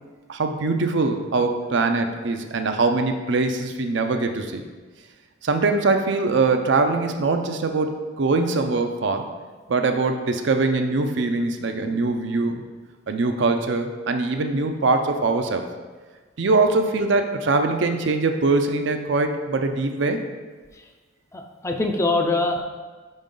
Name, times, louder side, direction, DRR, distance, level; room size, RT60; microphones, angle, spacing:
voice 1, 0.3-4.6 5.4-9.3 9.7-12.6 13.1-15.6 16.4-20.2, right 3 dB, 60° right, 6 dB, 0.5 m, -22 dB
voice 2, 21.3-22.6, left 2 dB, 15° left, 3 dB, 0.4 m, -24 dB
5.3 x 5.2 x 3.8 m, 1.4 s
head